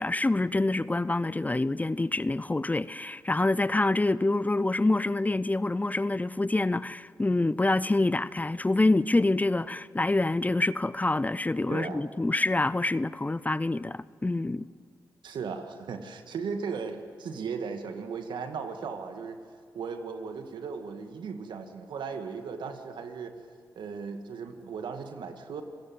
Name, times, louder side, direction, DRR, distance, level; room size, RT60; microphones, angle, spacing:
voice 1, 0.0-14.7, left 2 dB, 20° left, 0.6 m, -26 dB
voice 2, 11.7-12.0 15.2-19.4 19.7-23.3 23.8-25.6, right 5 dB, 75° right, 2.1 m, -36 dB
28.5 x 17.0 x 7.8 m
supercardioid pair, 45°, 8 cm